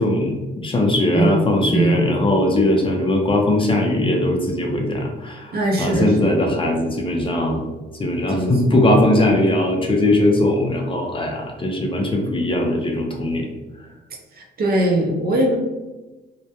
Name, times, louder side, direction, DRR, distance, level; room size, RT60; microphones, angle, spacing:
voice 1, 0.0-7.6 8.0-13.5, left 1 dB, 25° left, 1 dB, 0.4 m, -20 dB
voice 2, 1.7-2.3 5.5-6.1 8.3-8.5 14.3-15.6, right 1 dB, 50° right, 1 dB, 0.6 m, -20 dB
2.1 x 2.1 x 2.8 m, 1.1 s
cardioid pair, 90°, 20 cm